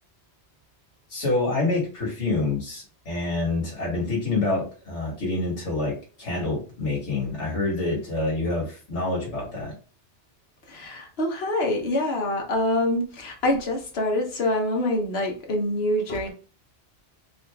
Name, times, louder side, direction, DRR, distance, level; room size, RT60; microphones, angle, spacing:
voice 1, 1.1-9.7, left 2 dB, 85° left, -4 dB, 2.0 m, -27 dB
voice 2, 10.7-16.3, left 1 dB, 65° left, 2 dB, 1.2 m, -25 dB
4.0 x 2.7 x 3.4 m, 0.37 s
omnidirectional pair, 1.2 m